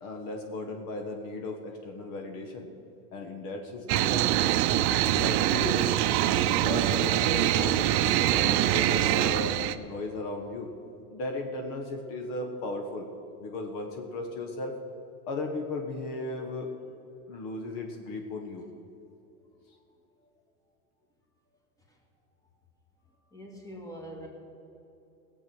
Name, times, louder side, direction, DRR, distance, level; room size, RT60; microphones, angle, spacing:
voice 1, 0.0-2.7 3.1-4.3 5.1-6.0 6.3-10.7 11.1-13.1 13.4-14.8 15.3-16.7 17.3-18.6, left 2 dB, 50° left, 4 dB, 1.6 m, -36 dB
sound 1, 3.9-9.7, right 13 dB, 50° right, 0.7 m, -24 dB
voice 2, 23.3-24.3, equal, 10° left, 0 dB, 2.1 m, -43 dB
16.5 x 8.1 x 6.3 m, 3.0 s
supercardioid pair, 130°, 43 cm